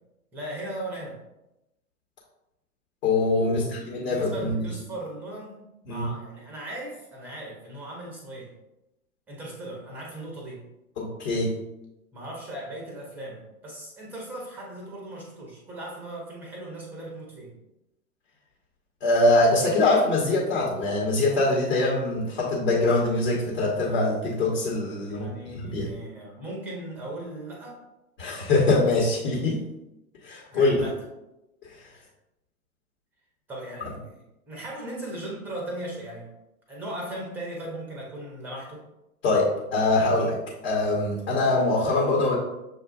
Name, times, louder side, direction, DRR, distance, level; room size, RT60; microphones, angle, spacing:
voice 1, 0.3-1.2 3.4-8.5 9.3-10.6 12.1-17.6 25.1-27.8 30.5-31.0 33.5-34.1 34.5-36.3 36.7-38.9, right 1 dB, 5° right, -2 dB, 0.5 m, -38 dB
voice 2, 3.0-4.7 5.9-6.1 11.0-11.5 19.0-25.3 25.6-25.9 28.2-29.6 30.2-30.7 31.6-31.8 39.2-42.3, left 2 dB, 45° left, -3 dB, 1.2 m, -23 dB
6.8 x 2.4 x 2.4 m, 0.93 s
hypercardioid pair, 120°, 44 cm